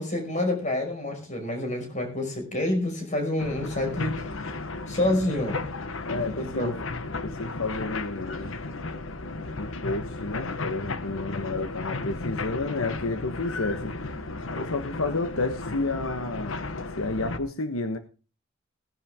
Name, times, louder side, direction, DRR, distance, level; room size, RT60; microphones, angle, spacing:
voice 1, 0.0-4.2 4.9-5.6 6.4-6.8, left 1 dB, 35° left, 4 dB, 5.4 m, -28 dB
sound 1, 3.4-17.4, left 3 dB, 65° left, 1.2 m, -34 dB
voice 2, 6.1-6.7 7.2-8.5 9.6-14.1 14.4-16.7 17.0-18.0, left 3 dB, 90° left, 9 dB, 1.3 m, -31 dB
18.0 x 10.5 x 3.6 m, 0.34 s
head